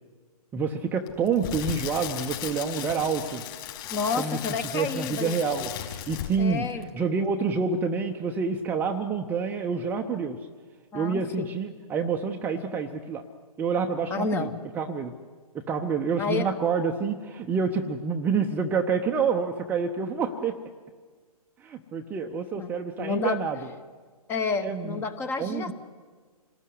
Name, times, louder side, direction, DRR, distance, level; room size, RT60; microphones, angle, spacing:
voice 1, 0.5-3.4 4.1-4.4 4.7-6.7 6.9-10.4 10.9-13.2 13.6-14.5 14.8-15.1 15.5-20.6 21.6-23.6 24.6-25.0 25.4-25.7, right 5 dB, 10° right, 4 dB, 0.7 m, -28 dB
Crackle, 1.1-6.5 6.8-7.0, left 11 dB, 35° left, 4.4 m, -36 dB
voice 2, 3.9-5.4 6.4-6.9 10.9-11.5 14.1-14.6 16.2-16.5 22.6-23.4 24.3-25.7, left 4 dB, 10° left, 13 dB, 1.0 m, -30 dB
27.0 x 19.0 x 9.7 m, 1.5 s
figure-of-eight pair, 130°, 20 cm